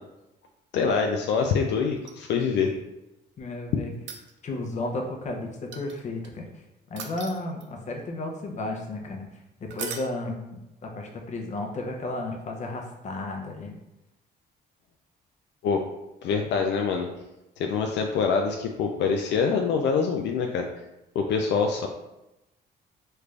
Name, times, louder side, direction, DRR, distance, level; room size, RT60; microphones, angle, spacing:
voice 1, 0.7-2.7 15.6-15.8 16.2-17.1 17.6-20.7 21.2-21.9, left 5 dB, 75° left, 3 dB, 0.4 m, -25 dB
sound 1, 2.0-2.7 3.9-4.7 5.7-6.3 7.0-7.9 9.7-10.1 12.4-12.5, right 7 dB, 85° right, 0.5 m, -39 dB
voice 2, 3.4-3.9 4.4-6.5 6.9-13.8, left 2 dB, 40° left, 1 dB, 0.7 m, -33 dB
3.2 x 2.5 x 3.3 m, 0.94 s
cardioid pair, 125°, 18 cm